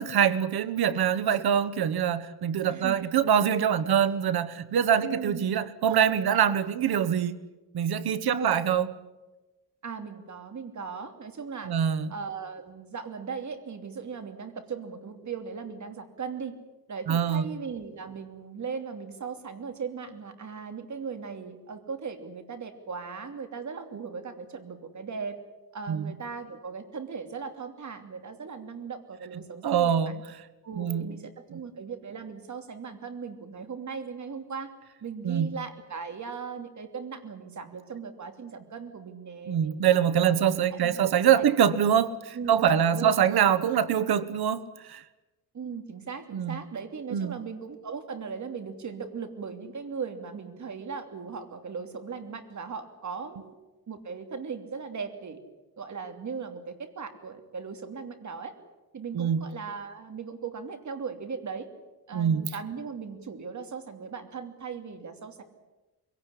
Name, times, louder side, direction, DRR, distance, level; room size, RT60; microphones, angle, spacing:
voice 1, 0.0-7.4 7.7-8.9 11.6-12.1 17.1-17.4 25.9-26.1 29.6-30.1 30.8-31.1 31.5-31.6 35.2-35.5 39.5-45.0 46.3-46.6 47.1-47.3 59.1-59.4 62.1-62.5, right 8 dB, 85° right, 15 dB, 1.3 m, -24 dB
voice 2, 2.7-3.1 5.0-5.5 8.3-8.6 9.8-11.7 12.1-16.5 16.9-25.4 25.7-30.2 30.6-34.7 35.0-39.8 40.2-40.4 40.7-41.0 41.3-41.4 42.3-43.3 45.5-53.5 53.9-55.4 55.8-58.5 58.9-61.7 62.1-65.4, right 5 dB, 50° right, 7 dB, 3.0 m, -38 dB
23.5 x 17.5 x 10.0 m, 1.1 s
cardioid pair, 115°, 37 cm